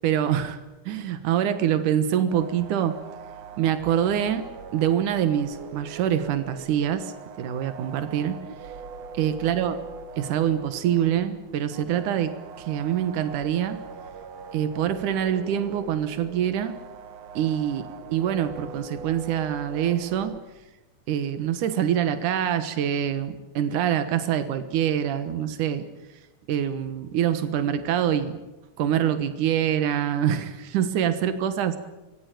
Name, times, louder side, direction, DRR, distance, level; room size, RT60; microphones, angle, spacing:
voice 1, 0.0-0.6 0.9-3.0 3.6-4.5 4.7-8.4 9.1-9.8 10.2-13.8 14.5-16.8 17.4-20.4 21.1-25.9 26.5-28.4 28.8-31.8, right 9 dB, 85° right, 10 dB, 2.8 m, -25 dB
sound 1, 2.1-20.4, right 5 dB, 60° right, 2.7 m, -42 dB
25.0 x 21.0 x 9.2 m, 1.0 s
omnidirectional pair, 3.5 m